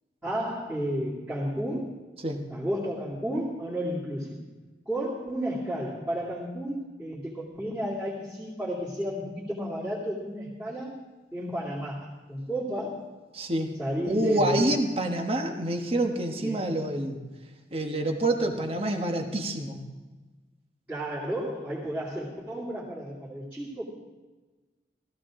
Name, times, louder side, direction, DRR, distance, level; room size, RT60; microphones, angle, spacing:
voice 1, 0.2-1.9 2.5-4.4 4.9-10.9 11.3-12.9 13.8-14.8 16.4-16.6 20.9-23.8, equal, 10° right, -10 dB, 2.5 m, -32 dB
voice 2, 13.3-13.7 14.0-17.2 17.7-19.8, right 1 dB, 35° right, 4 dB, 1.2 m, -27 dB
15.0 x 15.0 x 3.8 m, 1.3 s
head